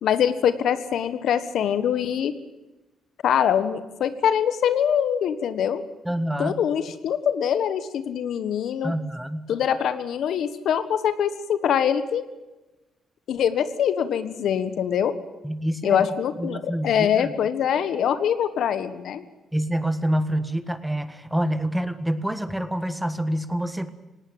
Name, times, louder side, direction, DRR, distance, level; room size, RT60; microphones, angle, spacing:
voice 1, 0.0-2.3 3.2-5.8 6.4-8.9 9.5-12.2 13.3-15.1 15.8-19.2, left 8 dB, 70° left, 12 dB, 1.4 m, -23 dB
voice 2, 6.0-6.6 8.8-9.5 15.4-16.1 16.4-17.3 19.5-23.9, right 1 dB, 5° right, 12 dB, 1.5 m, -27 dB
19.0 x 18.0 x 9.0 m, 1.1 s
cardioid pair, 90°, 0 cm